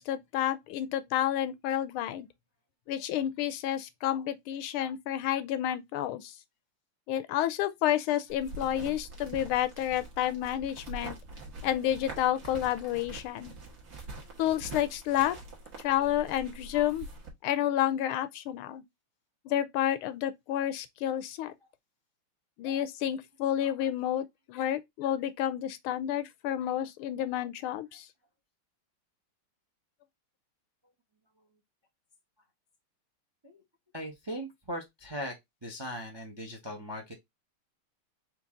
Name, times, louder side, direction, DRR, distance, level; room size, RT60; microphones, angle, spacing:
voice 1, 0.0-2.3 2.9-6.3 7.1-11.2 11.6-13.5 14.4-15.4 15.8-17.1 17.4-18.8 19.4-21.5 22.6-28.1, left 11 dB, 80° left, 1.4 m, -30 dB
sound 1, 8.3-17.3, right 2 dB, 50° right, 1.7 m, -44 dB
voice 2, 33.9-35.3 35.6-37.1, equal, 25° right, 0.5 m, -39 dB
4.6 x 2.7 x 3.6 m
omnidirectional pair, 2.3 m